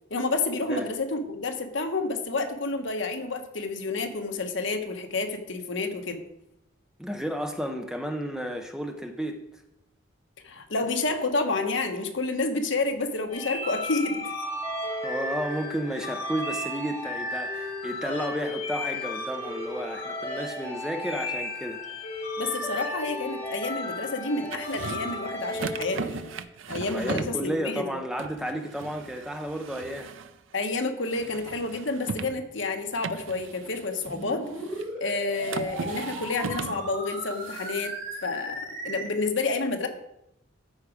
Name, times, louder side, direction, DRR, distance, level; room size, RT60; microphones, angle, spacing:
voice 1, 0.1-6.2 10.4-14.2 22.4-26.3 26.7-27.9 30.5-34.4 35.0-37.9 38.2-39.9, left 3 dB, 65° left, 5 dB, 1.1 m, -29 dB
voice 2, 7.0-9.4 14.9-21.8 26.9-30.1, equal, 5° right, 5 dB, 0.6 m, -32 dB
sound 1, 13.3-26.4, left 2 dB, 30° left, 3.9 m, -34 dB
sound 2, 24.5-25.2 25.5-27.5 28.2-30.5 31.1-32.4 33.0-34.9 35.3-36.9 37.3-37.9, right 5 dB, 75° right, 0.5 m, -38 dB
sound 3, 34.1-39.1, right 1 dB, 50° right, 3.2 m, -37 dB
13.0 x 4.9 x 4.9 m, 0.85 s
head